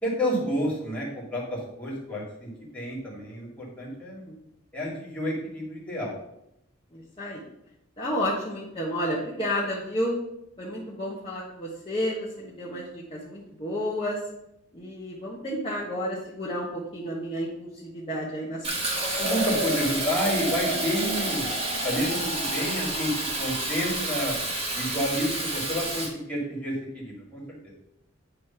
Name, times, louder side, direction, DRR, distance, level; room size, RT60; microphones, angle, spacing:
voice 1, 0.0-4.2 4.7-6.1 19.2-21.5 21.8-23.1 23.4-24.3 24.7-27.7, equal, 5° left, -5 dB, 2.2 m, -30 dB
voice 2, 6.9-7.4 8.0-10.2 10.6-14.2 14.7-18.9, equal, 25° left, -7 dB, 1.2 m, -31 dB
Fill (with liquid), 18.6-26.1, right 2 dB, 30° right, 1.4 m, -29 dB
9.4 x 3.2 x 5.7 m, 0.83 s
head